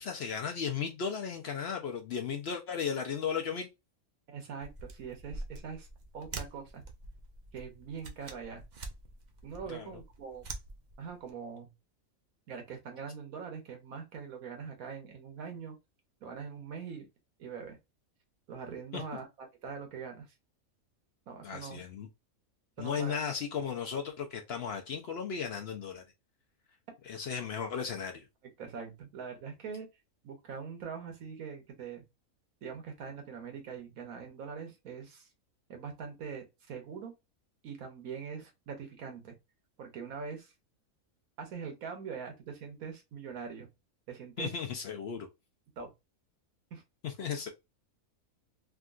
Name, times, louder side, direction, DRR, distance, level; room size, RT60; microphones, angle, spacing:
voice 1, 0.0-3.7 9.7-9.9 18.9-19.0 21.4-22.1 22.8-26.0 27.0-28.3 44.4-45.3 47.0-47.5, left 6 dB, 65° left, 0.6 m, -35 dB
voice 2, 4.3-5.9 6.1-6.8 7.5-8.6 9.4-10.5 11.0-11.7 12.5-15.8 16.2-17.1 17.4-17.8 18.5-20.3 21.3-21.8 22.8-23.2 28.4-29.9 30.2-32.0 32.6-35.3 35.7-37.1 37.6-39.4 39.8-40.5 41.4-43.7 44.1-44.5 45.8-45.9 46.7-46.8, right 6 dB, 85° right, 1.4 m, -43 dB
sound 1, 4.6-11.3, right 3 dB, 55° right, 0.5 m, -46 dB
3.6 x 2.4 x 2.4 m
omnidirectional pair, 1.4 m